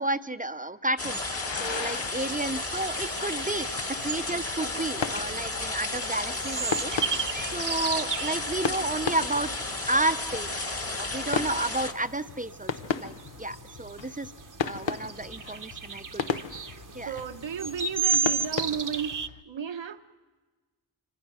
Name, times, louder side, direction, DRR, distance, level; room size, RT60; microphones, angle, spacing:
voice 1, 0.0-3.7 4.0-6.9 7.4-9.5 9.9-10.5 10.9-14.3 14.6-16.4 16.9-17.2, right 2 dB, 20° right, 11 dB, 0.6 m, -31 dB
sound 1, 1.0-19.4, left 6 dB, 80° left, 0.9 m, -37 dB
sound 2, 1.0-11.9, left 2 dB, 30° left, 1.6 m, -33 dB
sound 3, 1.6-19.3, right 5 dB, 45° right, 0.9 m, -36 dB
voice 2, 17.1-19.1 19.5-20.0, right 8 dB, 80° right, 7 dB, 1.0 m, -33 dB
26.0 x 24.5 x 6.2 m, 1.3 s
wide cardioid pair, 80°, 44 cm